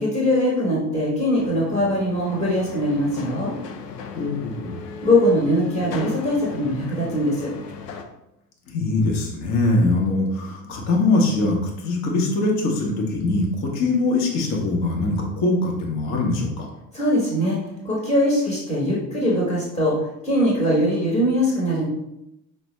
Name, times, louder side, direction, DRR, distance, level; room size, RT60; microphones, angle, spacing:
voice 1, 0.0-3.5 5.0-7.5 16.9-17.6 17.8-19.9 20.2-21.8, equal, 10° left, -5 dB, 1.1 m, -21 dB
sound 1, 1.4-8.0, left 5 dB, 75° left, 0.6 m, -37 dB
voice 2, 4.2-4.8 8.7-16.7, left 2 dB, 35° left, 0 dB, 0.9 m, -22 dB
5.1 x 2.1 x 3.1 m, 0.87 s
figure-of-eight pair, 70°, 49 cm